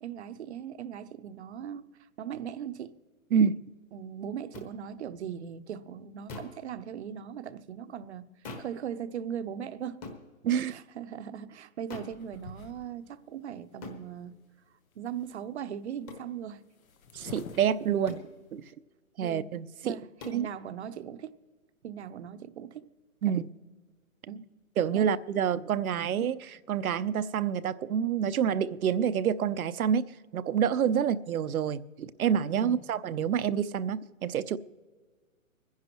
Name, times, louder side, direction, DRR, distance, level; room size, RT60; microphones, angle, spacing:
voice 1, 0.0-2.9 3.9-8.3 8.6-10.0 10.7-14.3 15.0-16.6 19.2-19.5 19.8-21.3 21.8-22.9 23.3-23.4 24.3-24.5 24.9-25.1 30.9-31.1 32.6-32.8, right 8 dB, 50° right, 0.7 m, -39 dB
sound 1, 4.5-4.7 6.3-6.6 8.4-8.8 10.0-10.2 11.9-12.2 13.8-14.0 16.1-16.3 18.1-18.3 20.2-20.5, left 3 dB, 20° left, 1.3 m, -42 dB
sound 2, 12.1-13.2 13.8-13.9 14.1-14.6 14.8-15.5 16.4-16.5 16.6-18.7, left 5 dB, 75° left, 1.4 m, -48 dB
voice 2, 17.1-18.2 18.5-18.6 19.2-20.0 20.3-20.5 23.2-23.5 24.8-30.1 30.3-34.6, right 8 dB, 85° right, 0.7 m, -27 dB
25.5 x 10.5 x 3.0 m
hypercardioid pair, 160°, 41 cm